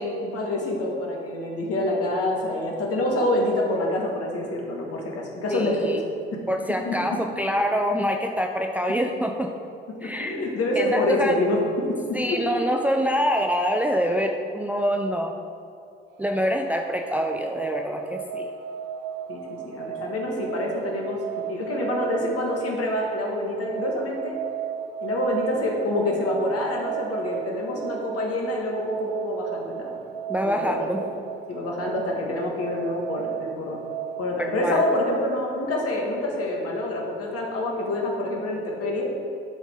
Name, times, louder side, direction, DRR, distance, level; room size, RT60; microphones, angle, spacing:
voice 1, 0.0-5.9 6.8-7.2 10.0-12.4 19.3-21.2 21.5-24.4 25.0-29.9 30.4-31.1 31.5-33.8 34.2-39.1, left 1 dB, 50° left, -1 dB, 1.7 m, -27 dB
voice 2, 5.5-6.0 6.5-9.5 10.0-10.4 10.8-11.4 12.1-15.3 16.2-18.5 30.3-31.0 34.4-34.7, equal, 5° right, 2 dB, 0.5 m, -25 dB
sound 1, 16.1-34.3, right 10 dB, 65° right, 0.4 m, -35 dB
11.0 x 4.0 x 3.7 m, 2.6 s
hypercardioid pair, 55°, 30 cm